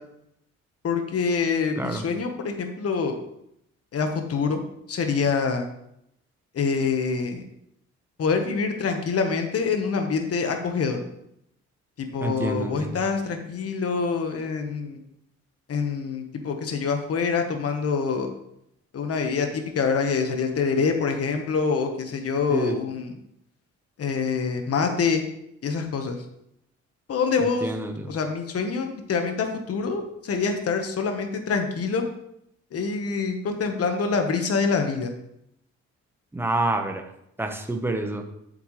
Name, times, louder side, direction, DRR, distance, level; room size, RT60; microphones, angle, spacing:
voice 1, 0.8-3.1 3.9-4.6 4.9-5.7 6.5-7.4 8.2-11.0 12.0-15.0 15.7-18.3 18.9-23.1 24.0-25.2 25.6-26.2 27.1-27.7 28.1-32.0 32.7-35.1, left 5 dB, 50° left, 5 dB, 1.3 m, -25 dB
voice 2, 12.2-13.0 22.5-22.7 27.4-27.9 36.3-37.0 37.4-38.2, right 1 dB, 5° right, 5 dB, 1.1 m, -27 dB
8.0 x 7.1 x 3.2 m, 0.78 s
cardioid pair, 90°, 30 cm